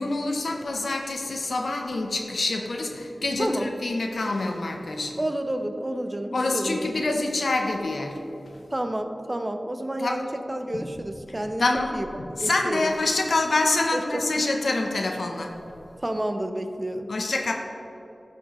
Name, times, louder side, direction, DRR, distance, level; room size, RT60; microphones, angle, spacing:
voice 1, 0.0-5.2 6.3-8.2 10.0-10.2 10.7-10.9 11.6-11.9 12.2-15.6 17.1-17.5, left 2 dB, 80° left, 2 dB, 0.6 m, -26 dB
voice 2, 5.2-7.0 8.7-11.7 11.9-12.9 13.9-14.0 14.3-14.4 16.0-17.1, right 1 dB, 25° right, 7 dB, 0.5 m, -30 dB
12.0 x 4.4 x 3.0 m, 2.9 s
wide cardioid pair, 65°, 0 cm